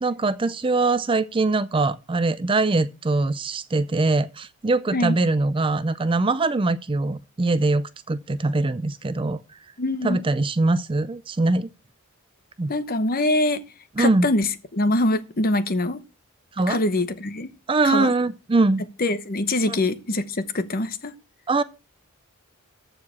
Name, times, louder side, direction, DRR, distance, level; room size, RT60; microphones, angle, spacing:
voice 1, 0.0-9.4 10.0-11.7 12.6-12.7 14.0-14.3 16.6-16.8 17.7-18.8 19.7-19.8 21.5-21.6, right 3 dB, 25° right, 0.4 m, -22 dB
voice 2, 9.8-10.2 12.7-13.6 14.0-16.0 16.7-17.5 17.8-18.1 19.0-21.1, left 2 dB, 40° left, 0.9 m, -24 dB
14.0 x 4.8 x 6.2 m
head